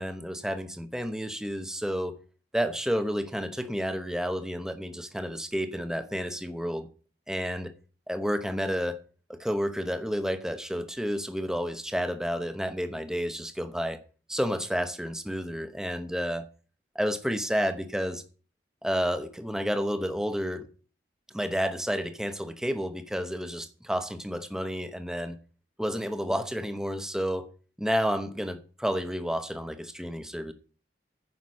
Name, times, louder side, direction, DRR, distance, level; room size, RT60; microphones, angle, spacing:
voice 1, 0.0-2.2 2.5-6.9 7.3-7.7 8.1-9.0 9.3-14.0 14.3-16.4 16.9-18.2 18.8-20.7 21.3-25.3 25.8-27.5 27.8-30.5, equal, 5° right, 0.9 m, -30 dB
9.6 x 6.0 x 7.5 m
head